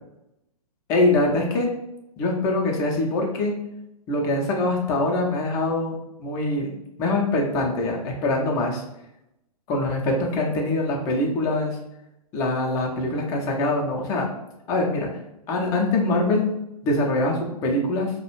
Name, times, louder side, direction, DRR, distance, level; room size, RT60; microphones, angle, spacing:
voice 1, 0.9-1.7 2.2-3.5 4.1-5.9 6.2-6.7 7.0-8.8 9.7-11.8 12.3-14.2 14.7-15.1 15.5-16.5 16.8-18.1, left 2 dB, 15° left, -1 dB, 0.4 m, -23 dB
2.3 x 2.0 x 2.9 m, 0.88 s
figure-of-eight pair, 115°, 20 cm